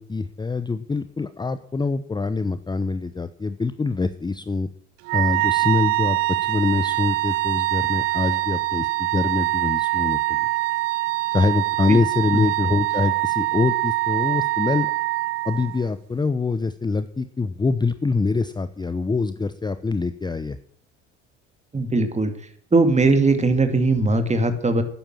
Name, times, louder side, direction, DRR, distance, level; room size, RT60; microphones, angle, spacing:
voice 1, 0.0-4.7 5.1-10.4 11.3-14.9 15.4-20.6, left 3 dB, 10° left, 12 dB, 0.8 m, -24 dB
Wind instrument woodwind instrument, 5.0-15.8, right 19 dB, 65° right, 1.2 m, -24 dB
voice 2, 21.7-22.3 22.7-24.8, right 3 dB, 20° right, 8 dB, 2.5 m, -19 dB
12.5 x 10.0 x 7.7 m, 0.62 s
figure-of-eight pair, 60°, 35 cm